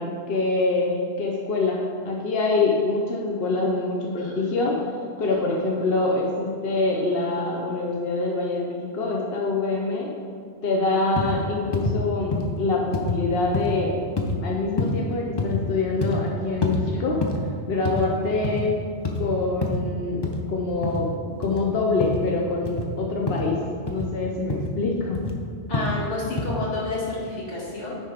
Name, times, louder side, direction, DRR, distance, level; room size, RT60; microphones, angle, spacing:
voice 1, 0.0-4.8 5.2-10.1 10.6-14.0 14.4-17.2 17.7-18.8 19.2-20.2 20.5-21.1 21.4-23.6 23.9-25.2, left 3 dB, 60° left, -1 dB, 1.0 m, -25 dB
voice 2, 5.3-5.6 16.6-17.1 25.7-28.0, left 2 dB, 80° left, -6 dB, 2.2 m, -31 dB
sound 1, 11.2-11.4 11.7-12.0 12.3-12.5 12.9-13.2 13.5-13.7 14.2-14.4 14.8-15.0 15.4-15.6 16.0-16.2 16.6-16.8 17.2-17.4 17.8-18.1 18.3-18.6 19.0-19.3 19.6-19.8 20.2-20.4 20.8-21.0 21.4-21.6 22.0-22.2 22.6-22.9 23.3-23.5 23.9-24.1 24.5-24.7 25.1-25.3 25.7-26.0 26.4-26.5, left 3 dB, 30° left, 0.6 m, -26 dB
9.7 x 3.6 x 5.0 m, 2.3 s
omnidirectional pair, 1.2 m